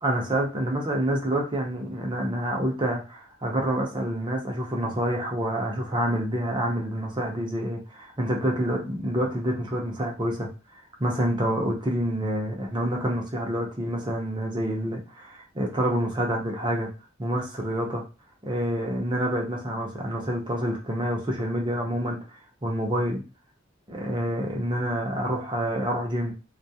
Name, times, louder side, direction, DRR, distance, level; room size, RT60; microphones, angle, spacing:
voice 1, 0.0-10.5 11.0-16.9 17.2-18.0 18.4-22.2 22.6-23.2 23.9-26.3, right 1 dB, 25° right, 0 dB, 0.6 m, -27 dB
2.2 x 2.1 x 2.7 m, 0.31 s
head